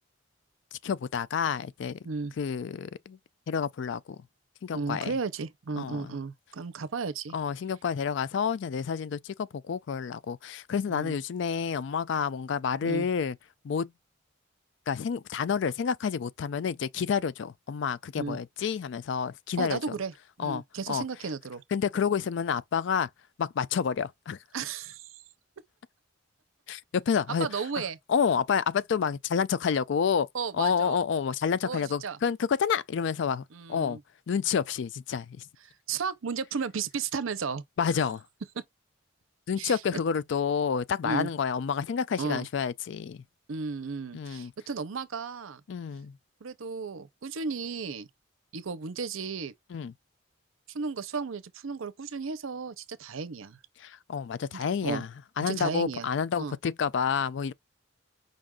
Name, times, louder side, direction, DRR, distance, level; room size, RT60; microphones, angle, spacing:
voice 1, 0.7-2.0 2.4-3.2 3.5-4.0 4.6-5.1 5.8-6.1 7.3-13.4 13.6-13.9 14.9-19.8 20.4-21.0 21.7-23.1 23.4-24.4 26.7-27.5 27.8-27.9 28.1-30.3 30.5-34.0 34.3-35.4 37.8-38.2 39.5-43.2 44.1-44.5 45.7-46.2 49.7-49.9 53.8-55.1 55.4-57.5, left 6 dB, 60° left, 0.3 m, -29 dB
voice 2, 4.7-7.4 10.9-11.1 12.8-13.1 18.2-18.4 19.6-20.1 20.4-21.6 24.5-25.1 27.4-28.0 30.3-31.0 31.6-32.2 33.5-34.0 35.9-37.6 38.6-38.7 39.6-39.8 41.0-41.3 42.2-42.5 43.5-45.6 46.4-48.1 48.5-49.5 50.7-53.6 54.5-55.0 55.5-56.1 56.4-56.6, right 5 dB, 80° right, 0.6 m, -34 dB
5.2 x 2.4 x 3.6 m
head